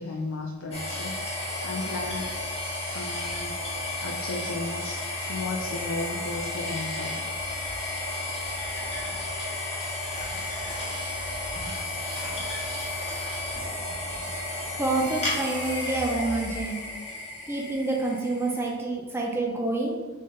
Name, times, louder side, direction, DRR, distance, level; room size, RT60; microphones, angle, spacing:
voice 1, 0.0-2.4 2.9-5.0 5.3-7.3, left 2 dB, 80° left, 0 dB, 0.4 m, -35 dB
sound 1, 0.7-18.7, left 2 dB, 30° left, 1.2 m, -33 dB
voice 2, 14.8-16.8 17.5-20.0, right 2 dB, 10° right, -1 dB, 0.4 m, -28 dB
3.8 x 3.7 x 3.7 m, 1.3 s
head